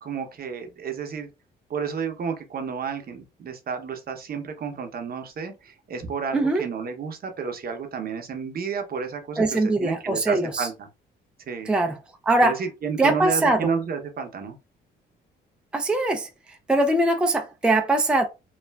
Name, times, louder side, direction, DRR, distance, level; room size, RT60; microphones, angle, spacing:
voice 1, 0.0-1.3 1.7-10.9 11.5-11.7 12.4-14.6, right 6 dB, 50° right, 0.8 m, -31 dB
voice 2, 6.3-6.6 9.4-10.7 11.6-12.0 12.2-12.6 13.0-13.7 15.7-16.3 16.7-18.3, right 2 dB, 5° right, 0.4 m, -21 dB
3.2 x 2.3 x 2.2 m
cardioid pair, 90°, 20 cm